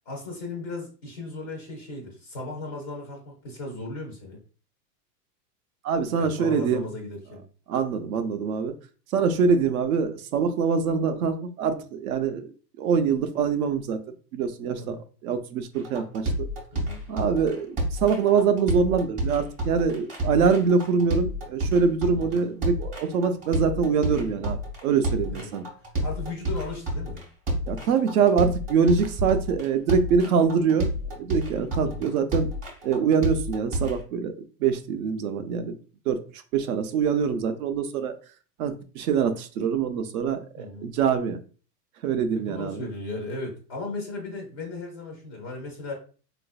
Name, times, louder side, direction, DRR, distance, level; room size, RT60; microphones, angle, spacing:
voice 1, 0.1-4.4 6.2-7.5 14.8-15.0 16.7-17.0 22.1-22.4 25.3-25.5 26.0-27.2 31.8-32.1 40.5-40.9 42.3-45.9, left 2 dB, 15° left, 0.4 m, -36 dB
voice 2, 5.8-6.9 7.7-8.7 9.1-12.5 12.8-14.0 14.3-15.0 15.2-16.3 17.1-25.6 27.7-32.5 32.8-34.3 34.6-35.7 36.1-36.2 36.5-38.1 38.6-41.4 42.0-42.8, right 6 dB, 65° right, 0.6 m, -24 dB
sound 1, 15.8-34.0, equal, 15° right, 0.7 m, -29 dB
4.0 x 2.5 x 2.3 m
supercardioid pair, 150°, 47 cm